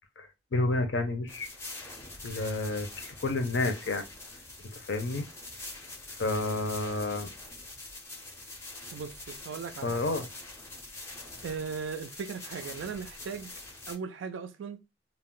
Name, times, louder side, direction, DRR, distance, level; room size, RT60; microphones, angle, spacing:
voice 1, 0.2-1.5 2.2-4.0 4.7-5.3 6.2-7.3 9.8-10.3, left 2 dB, 65° left, 0.6 m, -30 dB
sound 1, 1.3-14.0, left 2 dB, 15° left, 0.5 m, -45 dB
voice 2, 8.9-10.0 11.4-13.5 13.9-14.8, right 6 dB, 75° right, 0.3 m, -38 dB
2.3 x 2.0 x 3.7 m
head